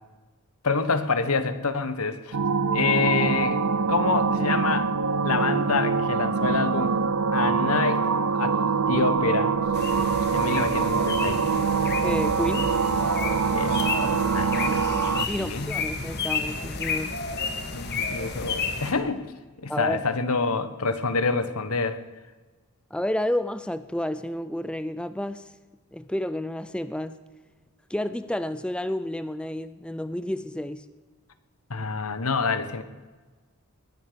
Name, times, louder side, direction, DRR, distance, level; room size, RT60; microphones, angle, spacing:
voice 1, 0.6-2.4 2.7-3.6 3.9-4.9 5.2-7.0 7.3-8.6 8.9-9.5 10.3-11.7 13.5-13.7 14.3-14.8 15.4-15.7 17.7-19.2 19.6-22.0 31.7-32.8, left 4 dB, 80° left, 11 dB, 1.4 m, -27 dB
sound 1, 2.3-15.3, right 5 dB, 85° right, 0.8 m, -24 dB
sound 2, 9.7-18.9, left 4 dB, 50° left, 2.0 m, -31 dB
voice 2, 12.0-12.7 14.6-15.0 15.3-17.1 19.7-20.0 22.9-25.5 25.9-27.2 27.9-30.9, left 1 dB, 5° left, 13 dB, 0.4 m, -30 dB
20.5 x 9.6 x 6.9 m, 1.3 s
head